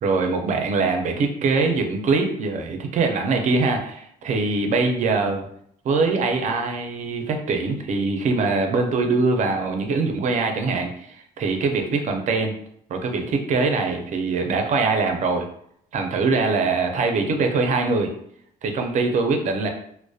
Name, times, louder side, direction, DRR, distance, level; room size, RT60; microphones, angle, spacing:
voice 1, 0.0-5.5 5.8-12.5 12.9-15.5 15.9-18.1 18.6-19.7, right 3 dB, 45° right, 4 dB, 0.5 m, -23 dB
2.6 x 2.0 x 2.3 m, 0.69 s
cardioid pair, 110°, 17 cm